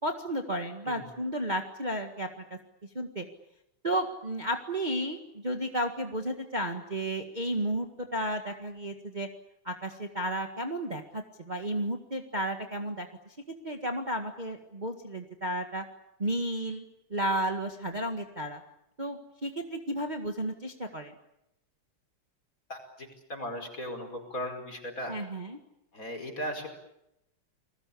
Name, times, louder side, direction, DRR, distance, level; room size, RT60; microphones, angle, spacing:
voice 1, 0.0-2.6 2.9-3.3 3.8-9.3 9.7-13.1 13.5-15.8 16.2-16.9 17.1-18.6 19.0-21.1 25.1-25.6, right 1 dB, 20° right, 4 dB, 1.8 m, -33 dB
voice 2, 22.7-25.2 25.9-26.7, equal, 40° left, 4 dB, 5.5 m, -37 dB
29.5 x 20.5 x 8.6 m, 0.85 s
omnidirectional pair, 2.3 m